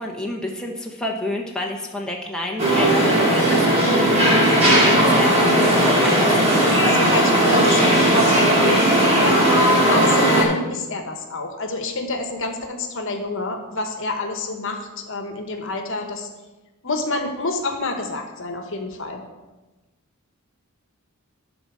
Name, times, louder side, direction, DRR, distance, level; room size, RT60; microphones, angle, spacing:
voice 1, 0.0-5.4 5.8-7.2, left 1 dB, 5° left, -1 dB, 0.9 m, -29 dB
sound 1, 2.6-10.4, right 1 dB, 30° right, 1.9 m, -17 dB
voice 2, 6.9-16.3 16.8-19.2, left 2 dB, 60° left, 4 dB, 1.2 m, -28 dB
12.0 x 4.0 x 6.2 m, 1.1 s
head